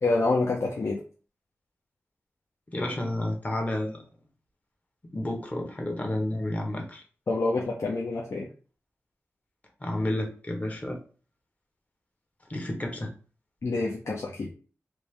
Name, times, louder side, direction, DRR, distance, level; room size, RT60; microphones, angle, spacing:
voice 1, 0.0-1.0 7.3-8.5 13.6-14.5, left 3 dB, 60° left, -1 dB, 0.6 m, -27 dB
voice 2, 2.7-4.0 5.1-7.0 9.8-11.0 12.5-13.1, left 1 dB, 30° left, 2 dB, 0.9 m, -30 dB
3.2 x 2.6 x 3.2 m, 0.38 s
wide cardioid pair, 75°, 5 cm